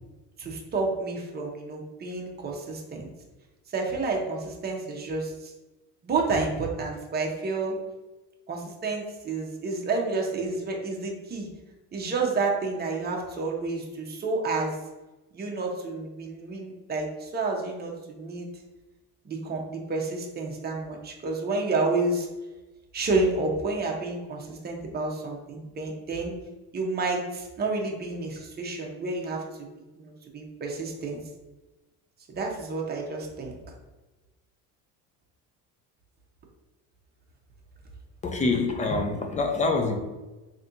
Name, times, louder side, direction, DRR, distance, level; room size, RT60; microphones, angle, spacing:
voice 1, 0.4-3.1 3.7-5.5 6.0-7.8 8.5-11.5 11.9-14.7 15.3-18.5 19.2-22.3 22.9-26.3 26.7-29.7 30.0-31.2 32.3-33.6, right 3 dB, 25° right, 0 dB, 0.8 m, -30 dB
voice 2, 38.2-40.0, left 3 dB, 20° left, 4 dB, 0.3 m, -25 dB
4.1 x 2.8 x 2.6 m, 1.1 s
cardioid pair, 120°, 38 cm